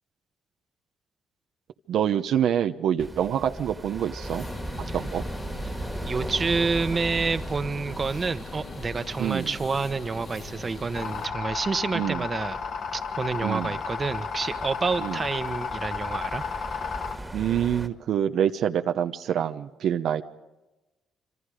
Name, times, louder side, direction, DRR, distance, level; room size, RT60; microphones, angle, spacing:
voice 1, 1.9-4.4 4.9-5.2 9.2-9.5 11.9-12.3 13.4-13.8 15.0-15.2 17.3-20.2, right 9 dB, 75° right, 7 dB, 0.9 m, -26 dB
sound 1, 3.0-17.9, right 1 dB, 10° right, 2.0 m, -38 dB
sound 2, 4.2-11.3, left 4 dB, 50° left, 3.5 m, -41 dB
voice 2, 6.0-12.6 12.9-16.4, right 4 dB, 35° right, 11 dB, 1.3 m, -28 dB
sound 3, 10.9-17.2, left 6 dB, 70° left, 2.6 m, -33 dB
26.0 x 25.5 x 5.1 m, 1.1 s
cardioid pair, 90°, 0 cm